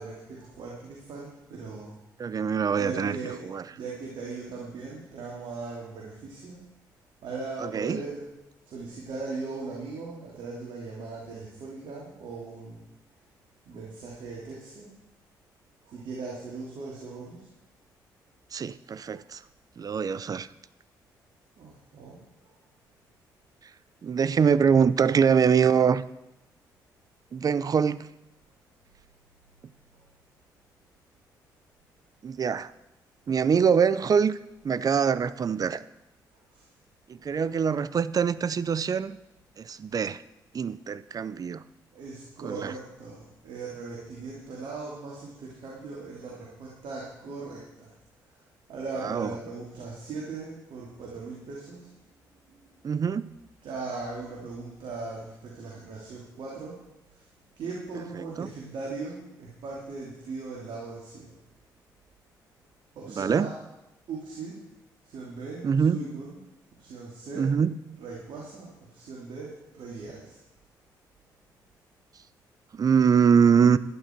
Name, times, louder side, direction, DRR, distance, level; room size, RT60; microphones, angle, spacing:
voice 1, 0.0-1.9 2.7-6.6 7.2-8.3 8.7-12.8 13.7-14.9 15.8-17.5 21.6-22.5 36.5-36.6 41.9-47.9 48.3-48.4 48.7-51.9 52.5-52.7 53.6-56.8 57.1-57.2 57.6-61.4 62.9-63.6 64.1-64.6 65.0-66.4 66.8-67.5 67.9-70.4, right 3 dB, 75° right, -3 dB, 2.9 m, -39 dB
voice 2, 2.2-3.2 3.4-3.6 7.6-8.0 18.5-19.4 19.8-20.5 24.0-26.0 27.3-28.1 32.2-32.7 33.3-34.4 34.6-35.8 37.1-39.2 39.6-40.2 40.5-41.6 42.4-42.7 49.0-49.3 52.8-53.3 58.4-58.5 63.2-63.5 65.6-66.0 67.4-67.7 72.7-73.8, right 6 dB, 50° right, 17 dB, 0.6 m, -23 dB
12.0 x 11.0 x 4.6 m, 0.93 s
supercardioid pair, 60°, 8 cm